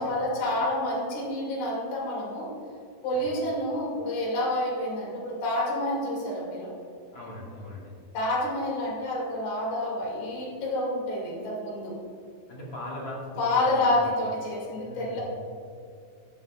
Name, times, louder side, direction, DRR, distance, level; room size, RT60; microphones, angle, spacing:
voice 1, 0.0-2.5 3.0-6.7 8.1-12.0 13.4-15.2, left 1 dB, 80° left, -4 dB, 4.3 m, -28 dB
voice 2, 7.1-7.9 12.5-14.0 14.8-15.2, left 1 dB, 40° left, -6 dB, 2.2 m, -39 dB
14.5 x 11.5 x 2.4 m, 2.4 s
omnidirectional pair, 4.2 m